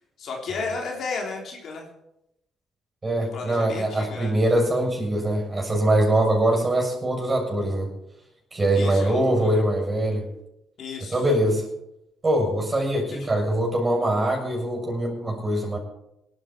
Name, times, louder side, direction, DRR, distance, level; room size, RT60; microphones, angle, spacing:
voice 1, 0.2-1.8 3.3-4.3 8.7-9.6 10.8-11.2 13.1-13.3, left 4 dB, 65° left, 0 dB, 3.5 m, -33 dB
voice 2, 3.0-7.9 8.5-10.3 11.0-11.7 12.2-15.8, right 1 dB, 25° right, -1 dB, 6.9 m, -23 dB
20.0 x 11.5 x 4.5 m, 0.82 s
cardioid pair, 90°, 0 cm